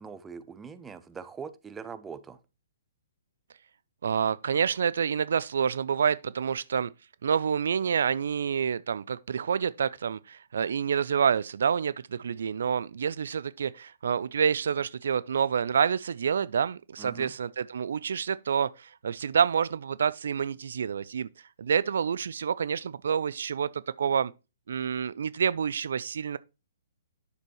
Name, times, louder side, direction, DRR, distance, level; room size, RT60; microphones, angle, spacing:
voice 1, 0.0-2.4 17.0-17.3, right 6 dB, 10° right, 0.8 m, -42 dB
voice 2, 4.0-6.9 7.2-21.3 21.6-24.3 24.7-26.4, right 7 dB, 65° right, 0.4 m, -28 dB
9.7 x 6.7 x 3.0 m
figure-of-eight pair, 125°, 0 cm